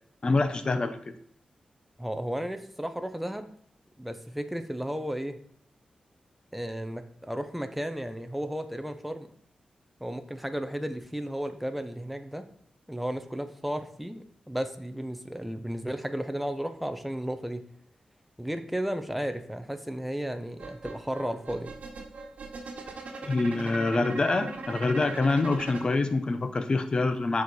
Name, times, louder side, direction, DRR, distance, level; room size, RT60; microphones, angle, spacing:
voice 1, 0.2-1.1 23.3-27.4, left 3 dB, 35° left, 9 dB, 0.7 m, -26 dB
voice 2, 2.0-3.5 4.0-5.4 6.5-9.3 10.0-12.5 12.9-17.7 18.4-21.7, equal, ahead, 8 dB, 0.5 m, -34 dB
sound 1, 20.6-25.9, right 3 dB, 65° right, 1.2 m, -40 dB
6.8 x 4.8 x 4.1 m, 0.63 s
wide cardioid pair, 125°, 3 cm